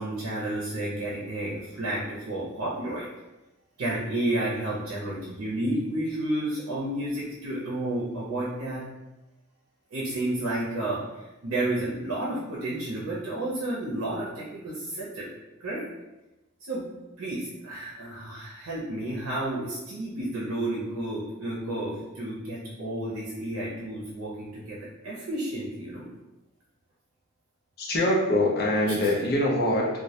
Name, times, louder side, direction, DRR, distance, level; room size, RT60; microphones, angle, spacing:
voice 1, 0.0-3.1 3.8-8.8 9.9-15.3 15.6-15.8 16.6-16.8 17.2-26.1 28.8-29.1, right 1 dB, 80° right, -5 dB, 0.5 m, -31 dB
voice 2, 27.8-29.9, left 1 dB, 45° left, -3 dB, 0.5 m, -23 dB
2.1 x 2.1 x 2.7 m, 1.0 s
head